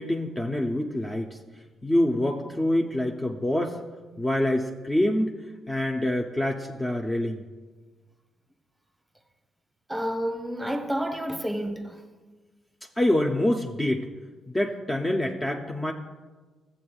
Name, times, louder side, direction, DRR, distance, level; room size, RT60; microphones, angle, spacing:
voice 1, 0.0-1.4 1.8-3.8 4.2-5.3 5.7-7.4 13.0-14.1 14.5-15.9, left 1 dB, 15° left, 0.5 m, -26 dB
voice 2, 9.9-12.0, equal, 10° right, 0.9 m, -30 dB
14.0 x 7.6 x 2.3 m
cardioid pair, 90°, 0 cm